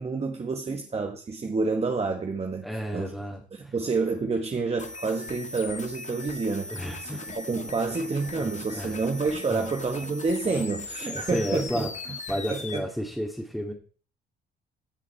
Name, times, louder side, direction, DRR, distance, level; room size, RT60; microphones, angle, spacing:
voice 1, 0.0-2.7 2.9-3.1 3.5-11.9 12.5-12.8, right 4 dB, 30° right, 1.4 m, -29 dB
voice 2, 2.6-3.7 6.7-8.0 8.4-9.0 9.5-9.7 10.6-10.7 11.1-11.9 12.3-13.7, equal, ahead, 2.3 m, -33 dB
sound 1, 4.8-12.8, left 3 dB, 35° left, 1.7 m, -39 dB
16.0 x 6.2 x 4.5 m
cardioid pair, 90°, 20 cm